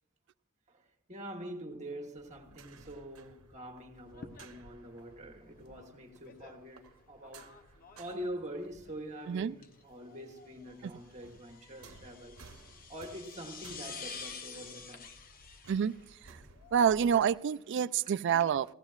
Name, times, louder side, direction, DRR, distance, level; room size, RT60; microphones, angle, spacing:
voice 1, 0.7-7.6 8.0-12.4 12.9-15.1 18.1-18.5, right 1 dB, 35° right, 1.2 m, -45 dB
sound 1, 2.2-10.0 10.3-17.3, right 3 dB, 90° right, 0.9 m, -58 dB
sound 2, 4.0-17.3, left 5 dB, 45° left, 0.7 m, -50 dB
voice 2, 16.7-18.7, right 8 dB, 60° right, 0.3 m, -27 dB
16.5 x 15.5 x 2.4 m
head